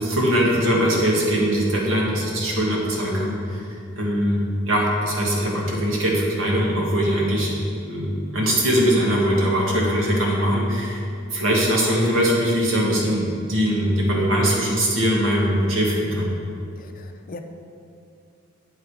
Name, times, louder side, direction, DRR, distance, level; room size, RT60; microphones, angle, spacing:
voice 1, 0.0-3.6 4.0-11.0 11.3-16.3, equal, 80° right, -3 dB, 1.6 m, -21 dB
voice 2, 16.8-17.4, left 2 dB, 45° left, 6 dB, 0.5 m, -40 dB
8.1 x 5.0 x 4.7 m, 2.5 s
head